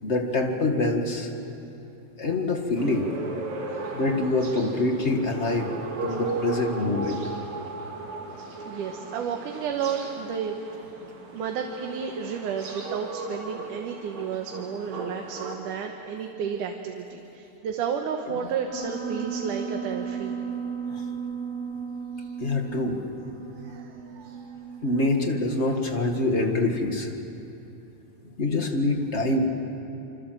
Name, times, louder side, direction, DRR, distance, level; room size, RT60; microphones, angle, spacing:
voice 1, 0.0-1.3 2.2-3.1 3.8-5.7 6.0-7.2 20.9-21.0 22.4-23.0 24.8-27.1 28.4-29.5, left 2 dB, 30° left, 3 dB, 1.6 m, -25 dB
sound 1, 2.8-15.6, right 3 dB, 65° right, 3.8 m, -36 dB
voice 2, 8.4-10.9 11.3-20.4 22.2-22.3 23.5-24.6, right 7 dB, 90° right, 3 dB, 2.8 m, -32 dB
Piano, 18.7-24.9, right 6 dB, 65° left, 9.3 m, -35 dB
26.5 x 26.0 x 7.7 m, 2.9 s
omnidirectional pair, 3.5 m